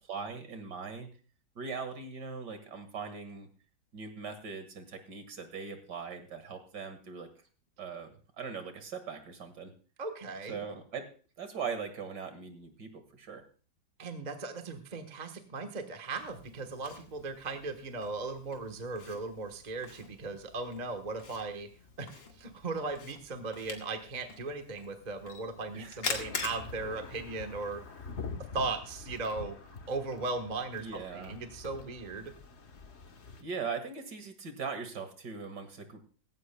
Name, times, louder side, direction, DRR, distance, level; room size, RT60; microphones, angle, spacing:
voice 1, 0.1-1.1 1.6-3.5 3.9-7.3 7.8-9.7 10.5-11.1 11.4-13.4 25.7-26.0 30.8-31.4 33.4-36.0, right 5 dB, 60° right, 8 dB, 2.3 m, -40 dB
voice 2, 10.0-10.6 14.0-21.7 22.0-27.8 28.5-29.6 29.9-32.3, right 3 dB, 25° right, 6 dB, 1.1 m, -37 dB
Camera, 16.1-28.1, left 4 dB, 65° left, 2.5 m, -45 dB
sound 1, 26.1-33.4, left 4 dB, 40° left, 1.3 m, -46 dB
17.0 x 16.0 x 2.2 m, 0.38 s
omnidirectional pair, 2.1 m